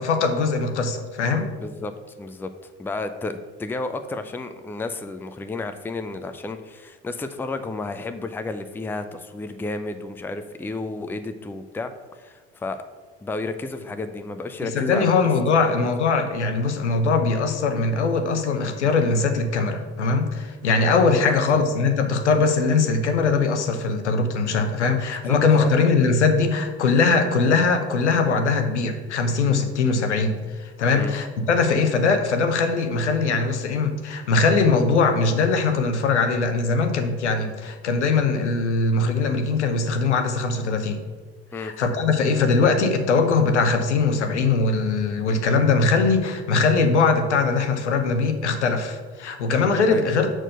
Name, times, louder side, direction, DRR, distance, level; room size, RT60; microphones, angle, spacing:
voice 1, 0.0-1.5 14.6-41.0 41.6-50.3, left 4 dB, 80° left, 7 dB, 0.8 m, -21 dB
voice 2, 1.6-1.9 2.2-2.5 2.8-12.8 13.2-15.1 15.6-15.8 21.2-21.6 25.3-25.7 30.9-31.1 41.5-41.7 49.9-50.1, left 3 dB, 5° left, 9 dB, 0.5 m, -32 dB
6.1 x 4.5 x 6.5 m, 1.4 s
figure-of-eight pair, 60°, 34 cm